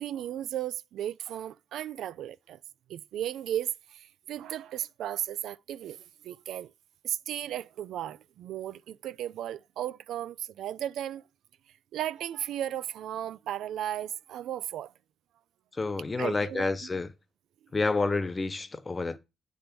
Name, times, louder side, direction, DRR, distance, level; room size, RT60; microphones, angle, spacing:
voice 1, 0.0-2.6 2.9-6.7 7.0-11.2 11.9-14.9 16.2-16.9, right 11 dB, 80° right, 0.3 m, -35 dB
voice 2, 15.8-17.1 17.7-19.2, left 3 dB, 25° left, 0.7 m, -29 dB
8.7 x 3.5 x 5.9 m
cardioid pair, 90°, 0 cm